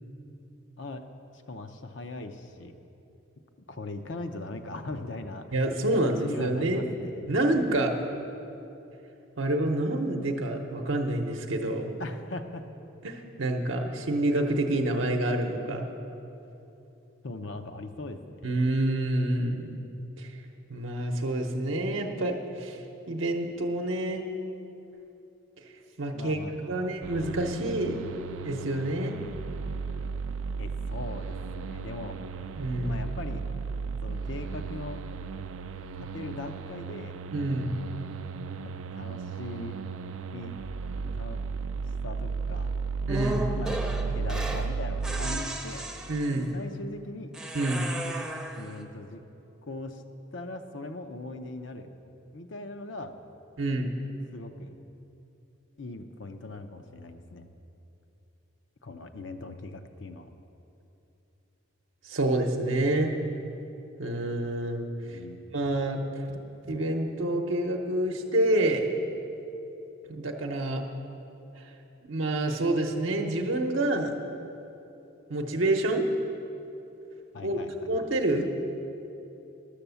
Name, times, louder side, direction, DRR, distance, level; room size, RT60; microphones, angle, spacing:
voice 1, 1.5-2.7 3.7-5.5 5.9-7.2 12.0-12.7 17.2-18.4 26.1-26.9 30.6-32.2 32.8-33.4 34.0-35.0 36.0-37.1 38.6-39.8 40.3-40.6 41.1-41.4 41.8-42.7 43.5-43.8 44.1-45.8 46.4-47.3 48.6-49.2 49.7-50.0 50.3-51.9 52.3-53.1 54.3-54.8 55.8-57.5 58.8-60.3 65.1-65.4 77.3-78.0, left 2 dB, 65° left, 7 dB, 0.7 m, -40 dB
voice 2, 5.5-6.9 7.3-8.0 9.4-11.9 13.0-15.9 18.4-19.8 20.2-20.3 20.7-22.8 23.1-24.2 26.0-26.4 26.7-28.0 28.4-29.2 32.6-33.0 37.3-37.7 43.1-43.4 46.1-46.5 47.5-47.9 53.6-53.9 62.0-63.1 64.0-65.2 65.5-66.2 66.7-68.9 70.1-70.8 72.1-74.1 75.3-76.0 77.4-77.6 77.9-78.5, right 1 dB, 75° right, 1 dB, 0.8 m, -27 dB
sound 1, 27.0-45.4, right 5 dB, 90° right, 0.4 m, -35 dB
sound 2, 43.1-44.7 45.0-46.5 47.3-48.7, right 1 dB, 5° right, 0.6 m, -35 dB
11.5 x 7.1 x 6.9 m, 2.9 s
head